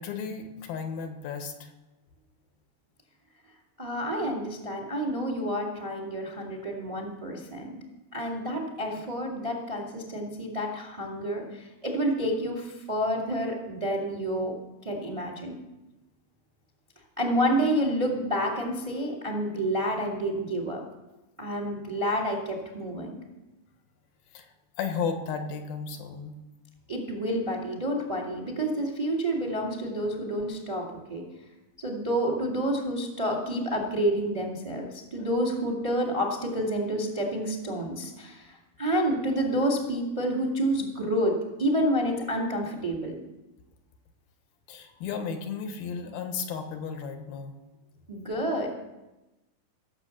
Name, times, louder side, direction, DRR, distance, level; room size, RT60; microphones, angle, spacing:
voice 1, 0.0-1.7 24.3-24.5 24.8-26.4 35.2-35.5 44.7-47.5, left 6 dB, 80° left, 6 dB, 3.1 m, -34 dB
voice 2, 3.8-7.8 8.1-14.5 14.8-15.5 17.2-20.8 21.4-23.2 26.9-30.8 31.1-31.2 31.8-41.3 41.6-43.1 48.1-48.7, equal, 15° right, 0 dB, 1.3 m, -29 dB
16.5 x 7.5 x 7.1 m, 1.1 s
omnidirectional pair, 4.3 m